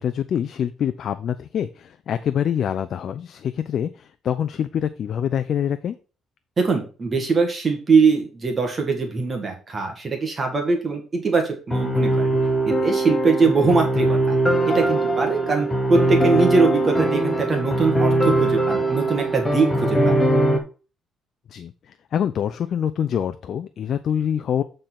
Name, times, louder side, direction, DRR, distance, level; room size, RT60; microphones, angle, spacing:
voice 1, 0.0-6.0 13.6-13.8 21.5-21.7 22.1-24.6, left 9 dB, 50° left, 11 dB, 0.5 m, -25 dB
voice 2, 6.6-12.3 12.7-14.4 14.6-20.2, right 4 dB, 25° right, 3 dB, 1.6 m, -22 dB
sound 1, 11.7-20.6, right 1 dB, 10° left, 1.1 m, -21 dB
8.8 x 3.9 x 5.9 m, 0.36 s
cardioid pair, 165°, 0 cm